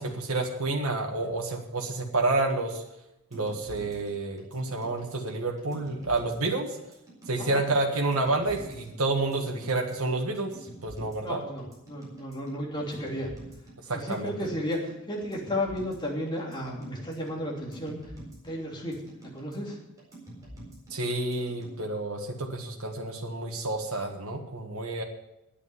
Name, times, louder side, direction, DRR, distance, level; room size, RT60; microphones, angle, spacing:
voice 1, 0.0-2.8 3.3-6.8 7.3-10.6 10.8-11.4 13.9-14.3 20.9-25.0, right 2 dB, 75° right, 1 dB, 1.6 m, -29 dB
sound 1, 3.3-21.8, right 1 dB, 15° right, 4.4 m, -47 dB
voice 2, 11.2-13.3 13.9-18.0 18.4-19.8, left 1 dB, 20° left, -2 dB, 2.9 m, -33 dB
10.0 x 8.5 x 9.8 m, 0.89 s
head